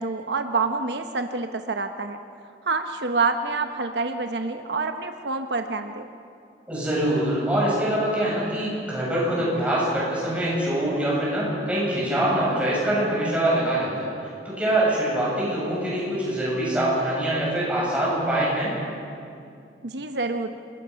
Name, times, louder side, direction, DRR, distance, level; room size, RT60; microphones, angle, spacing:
voice 1, 0.0-2.2 2.7-6.1 19.8-20.6, right 3 dB, 75° right, 7 dB, 0.9 m, -27 dB
voice 2, 6.7-14.1 14.4-18.7, right 1 dB, 5° right, -7 dB, 7.9 m, -24 dB
28.0 x 21.5 x 5.7 m, 2.5 s
head